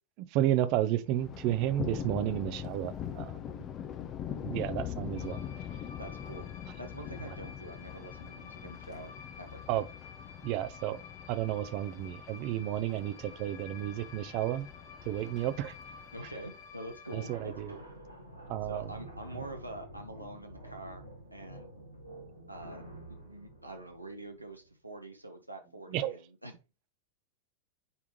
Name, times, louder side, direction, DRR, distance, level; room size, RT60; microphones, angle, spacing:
voice 1, 0.2-3.6 4.4-5.4 7.3-7.4 9.7-9.9 10.4-11.0 11.3-14.7 15.0-15.8 17.1-17.7 18.5-18.9 25.9-26.2, right 13 dB, 45° right, 0.6 m, -32 dB
Thunder, 1.1-17.0, left 9 dB, 30° left, 0.6 m, -43 dB
sound 1, 5.2-17.3, left 5 dB, 55° left, 2.0 m, -51 dB
voice 2, 6.0-6.4 6.8-9.1 9.4-9.6 16.1-17.9 18.7-21.0 21.3-21.7 22.5-22.8 23.1-26.5, right 1 dB, 85° right, 1.0 m, -45 dB
sound 2, 17.3-24.7, right 1 dB, 90° left, 1.7 m, -49 dB
9.6 x 3.6 x 3.0 m
figure-of-eight pair, 90°, 0 cm